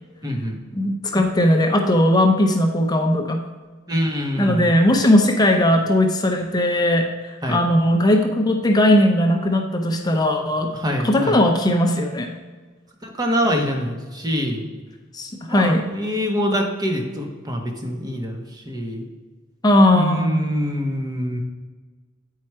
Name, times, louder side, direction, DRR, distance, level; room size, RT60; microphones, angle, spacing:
voice 1, 0.2-0.6 3.9-4.7 7.4-7.6 10.7-11.4 13.0-14.7 15.5-19.1 19.9-21.4, equal, 20° right, 2 dB, 1.1 m, -25 dB
voice 2, 0.8-3.4 4.4-10.7 11.0-12.3 15.1-15.8 19.6-20.4, left 1 dB, 20° left, 3 dB, 0.6 m, -18 dB
8.7 x 4.8 x 4.4 m, 1.4 s
head